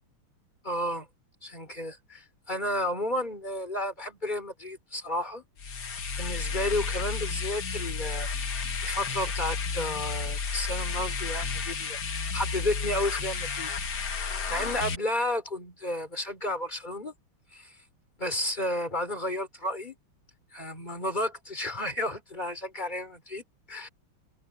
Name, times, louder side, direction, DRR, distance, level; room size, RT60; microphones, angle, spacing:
voice 1, 0.6-1.1 1.4-5.4 6.2-8.3 8.8-13.7 14.5-17.1 17.5-17.7 18.2-19.9 20.5-23.9, left 1 dB, 20° left, 4.6 m, -32 dB
sound 1, 5.6-15.0, left 5 dB, 50° left, 2.2 m, -32 dB
omnidirectional pair, 2.4 m